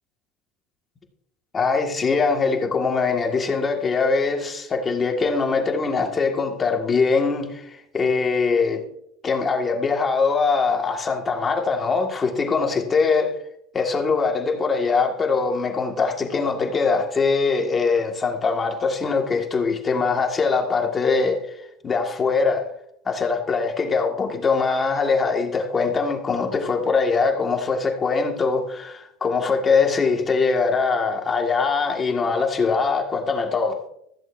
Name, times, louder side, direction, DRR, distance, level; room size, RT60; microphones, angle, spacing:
voice 1, 1.5-8.8 9.2-13.3 13.7-22.7 23.1-33.8, left 4 dB, 20° left, 1.7 m, -22 dB
15.5 x 14.0 x 2.6 m
cardioid pair, 160°, 0 cm